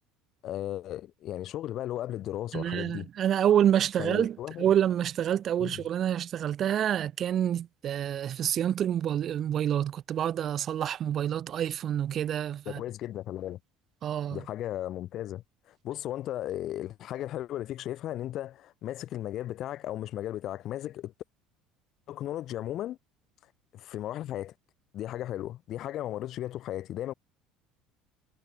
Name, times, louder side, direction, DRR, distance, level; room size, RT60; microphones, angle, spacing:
voice 1, 0.4-3.1 4.0-4.7 5.6-5.8 12.7-13.6 14.3-15.4 15.8-21.1 22.1-23.0 23.7-24.5 24.9-27.1, left 13 dB, 55° left, 5.6 m, -35 dB
voice 2, 2.5-12.8 14.0-14.4, right 10 dB, 50° right, 4.1 m, -27 dB
hypercardioid pair, 70°, 0 cm